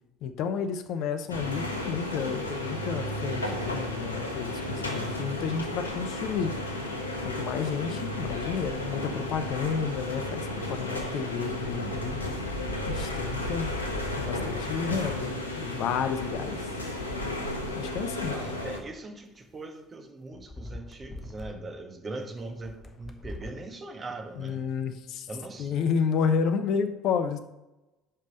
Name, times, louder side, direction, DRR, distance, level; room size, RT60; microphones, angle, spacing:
voice 1, 0.2-6.5 7.2-12.3 12.9-13.7 14.2-16.6 17.7-18.3 24.4-25.3 25.6-27.4, left 6 dB, 55° left, 9 dB, 0.7 m, -31 dB
sound 1, 1.3-18.8, left 1 dB, 90° left, 0.8 m, -33 dB
voice 2, 18.3-24.6 25.3-25.7, right 2 dB, 30° right, 5 dB, 1.3 m, -40 dB
sound 2, 19.4-19.5 20.3-21.6 22.4-23.6 24.4-24.7, left 1 dB, 30° left, 1.0 m, -43 dB
5.5 x 5.3 x 6.4 m, 1.0 s
figure-of-eight pair, 60°, 0 cm